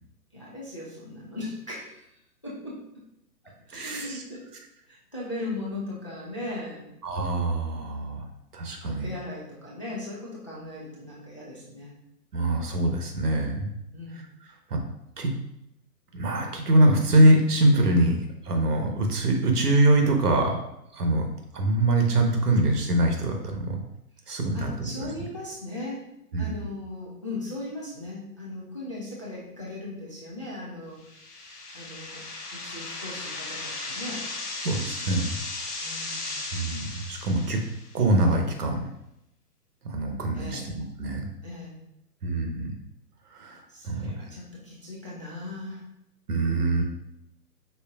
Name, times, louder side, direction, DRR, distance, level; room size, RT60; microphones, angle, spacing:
voice 1, 0.3-2.0 2.4-3.0 3.7-4.5 4.9-6.9 8.9-12.0 13.9-14.2 24.5-26.1 26.4-31.2 31.7-32.2 32.5-34.3 35.8-36.4 40.3-40.8 41.4-41.8 43.7-45.8 46.6-46.8, left 2 dB, 20° left, -6 dB, 0.4 m, -38 dB
voice 2, 3.7-4.2 7.0-8.3 8.5-9.1 12.3-13.7 14.7-14.8 15.2-15.3 16.1-18.2 18.4-20.6 20.9-21.2 21.5-23.8 24.3-25.1 26.3-26.6 34.6-35.4 36.5-37.6 37.9-38.8 39.8-40.7 41.0-41.3 42.2-42.7 43.3-44.1 46.3-46.8, right 1 dB, 70° right, 3 dB, 1.2 m, -23 dB
sound 1, 31.0-38.0, left 2 dB, 70° left, 1.3 m, -36 dB
5.6 x 4.0 x 2.4 m, 0.83 s
figure-of-eight pair, 135°, 48 cm